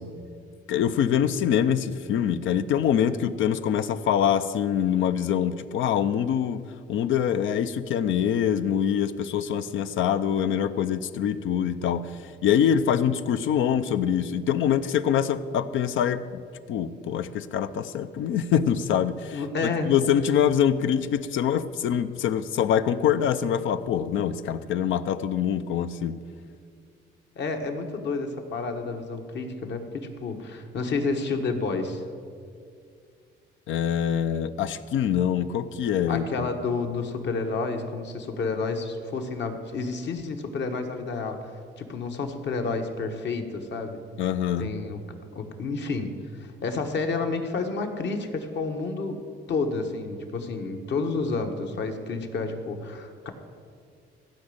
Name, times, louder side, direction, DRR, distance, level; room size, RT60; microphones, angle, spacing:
voice 1, 0.7-6.6 6.9-16.4 16.7-26.2 33.7-36.5 44.2-44.7, left 9 dB, 80° left, 12 dB, 0.6 m, -24 dB
voice 2, 19.3-19.9 27.3-32.0 36.1-41.5 41.8-44.0 44.6-45.0 45.3-49.2 49.5-53.3, left 4 dB, 65° left, 5 dB, 1.4 m, -30 dB
15.5 x 5.3 x 8.7 m, 2.2 s
cardioid pair, 90°, 20 cm